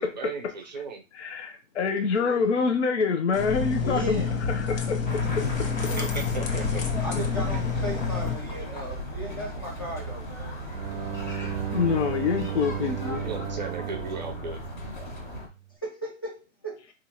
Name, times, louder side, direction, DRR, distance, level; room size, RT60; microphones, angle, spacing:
voice 1, 0.0-1.0 6.0-6.9 13.2-14.6, right 4 dB, 35° right, 4 dB, 0.5 m, -36 dB
voice 2, 1.1-4.2 4.5-5.5 11.7-13.2, left 5 dB, 55° left, 4 dB, 0.7 m, -26 dB
sound 1, 3.3-8.3, left 5 dB, 80° left, 1.1 m, -28 dB
voice 3, 3.8-4.4 7.0-10.6 15.8-16.4 16.6-16.8, right 1 dB, 20° left, -3 dB, 0.5 m, -36 dB
sound 2, 5.1-15.5, left 1 dB, 35° left, 1.3 m, -35 dB
Bowed string instrument, 10.7-15.5, right 13 dB, 85° right, 0.6 m, -35 dB
4.4 x 2.5 x 2.8 m, 0.29 s
hypercardioid pair, 180°, 40 cm